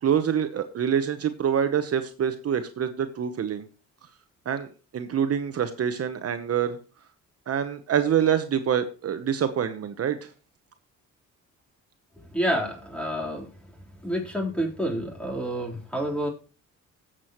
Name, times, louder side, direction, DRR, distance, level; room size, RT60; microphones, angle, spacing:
voice 1, 0.0-3.7 4.4-6.8 7.5-10.3, right 8 dB, 55° right, 9 dB, 1.0 m, -26 dB
voice 2, 12.2-13.5 14.0-16.3, equal, 5° left, -1 dB, 3.8 m, -28 dB
17.0 x 7.6 x 3.1 m, 0.35 s
cardioid pair, 90°, 30 cm